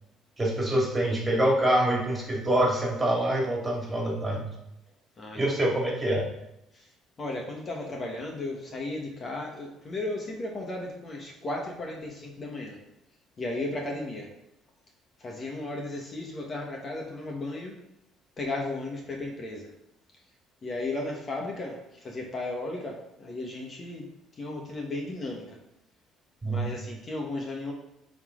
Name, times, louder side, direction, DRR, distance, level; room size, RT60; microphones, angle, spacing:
voice 1, 0.4-4.5 5.3-6.3 26.4-26.8, right 1 dB, 20° right, -2 dB, 2.5 m, -25 dB
voice 2, 7.2-11.2 11.4-12.0 12.4-12.7 13.4-14.2 15.2-17.7 18.4-19.6 20.6-21.7 22.1-22.9 23.3-24.0 24.4-25.4 26.5-26.8 27.1-27.7, left 2 dB, 35° left, 0 dB, 1.5 m, -34 dB
10.5 x 4.0 x 3.9 m, 0.84 s
cardioid pair, 100°, 0 cm